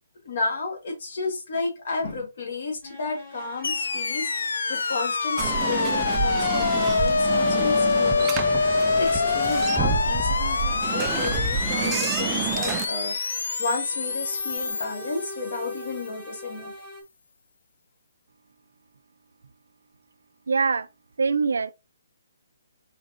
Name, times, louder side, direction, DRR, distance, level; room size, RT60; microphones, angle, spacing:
voice 1, 0.2-4.3 4.7-13.2 13.6-16.7, left 3 dB, 45° left, 1.5 m, -32 dB
sound 1, 2.8-17.0, equal, 15° left, 1.4 m, -43 dB
sound 2, 3.6-15.9, left 4 dB, 75° left, 0.4 m, -25 dB
sound 3, 5.4-12.9, right 7 dB, 15° right, 0.3 m, -29 dB
voice 2, 20.5-20.9 21.2-21.7, right 5 dB, 90° right, 0.4 m, -23 dB
5.1 x 3.8 x 2.6 m
hypercardioid pair, 170°, 0 cm